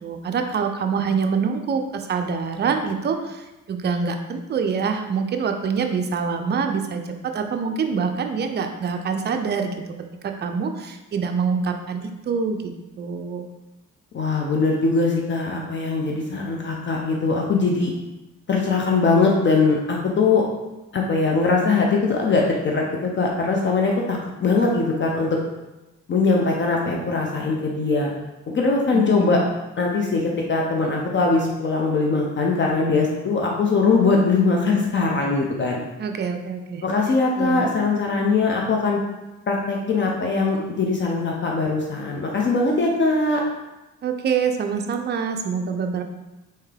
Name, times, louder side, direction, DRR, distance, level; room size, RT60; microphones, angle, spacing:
voice 1, 0.0-9.7 10.2-13.4 28.9-29.5 36.0-36.8 37.4-37.7 44.0-46.0, right 5 dB, 35° right, 5 dB, 0.4 m, -25 dB
voice 2, 14.1-17.9 18.5-20.4 20.9-25.4 26.1-28.1 28.5-29.4 29.8-35.8 36.8-39.0 39.5-43.4, left 3 dB, 40° left, -1 dB, 0.5 m, -21 dB
3.4 x 2.8 x 3.3 m, 1.0 s
cardioid pair, 90°, 30 cm